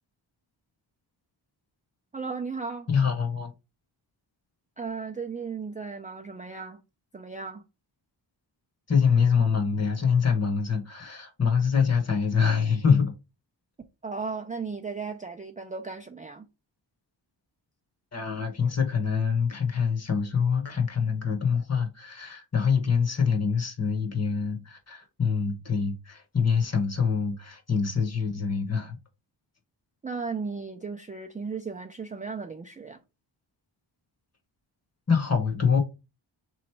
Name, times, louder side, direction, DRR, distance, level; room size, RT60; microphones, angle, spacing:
voice 1, 2.1-2.9 4.8-6.8 7.1-7.6 14.0-16.5 30.0-33.0, right 4 dB, 20° right, 0.3 m, -35 dB
voice 2, 2.9-3.5 8.9-13.1 18.1-29.0 35.1-35.8, left 6 dB, 35° left, 1.1 m, -25 dB
3.8 x 3.1 x 4.5 m
wide cardioid pair, 150°, 45 cm